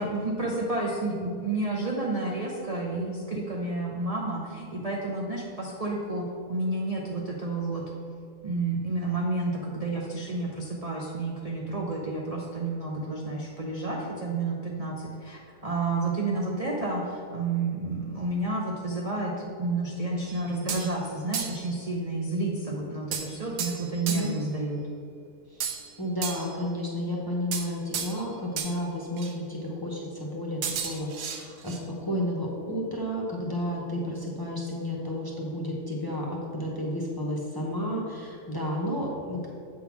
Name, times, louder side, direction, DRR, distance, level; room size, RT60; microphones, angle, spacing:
voice 1, 0.0-7.8 8.4-24.8, right 2 dB, 40° right, -2 dB, 0.5 m, -30 dB
sound 1, 20.3-21.0 21.3-21.7 23.1-24.4 25.6-26.7 27.5-28.3 28.6-28.8 29.2-29.3 30.6-31.8, right 7 dB, 85° right, 1.3 m, -34 dB
voice 2, 26.0-39.5, equal, 20° left, -3 dB, 0.7 m, -32 dB
7.9 x 3.8 x 5.9 m, 2.3 s
omnidirectional pair, 1.7 m